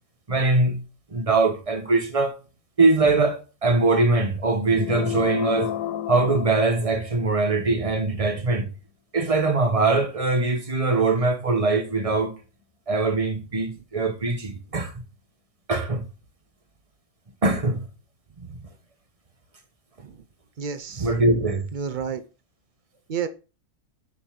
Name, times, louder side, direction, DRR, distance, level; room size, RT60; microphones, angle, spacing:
voice 1, 0.3-0.8 1.1-2.4 2.8-5.7 6.1-8.7 9.1-12.3 12.9-14.9 15.7-16.0 17.4-17.9 18.5-18.6 21.0-21.7, right 3 dB, 25° right, 1.2 m, -22 dB
sound 1, 4.7-7.4, left 11 dB, 70° left, 0.9 m, -31 dB
voice 2, 20.6-21.1 21.7-22.2 23.1-23.3, right 7 dB, 70° right, 0.4 m, -31 dB
6.9 x 5.4 x 6.1 m
omnidirectional pair, 1.7 m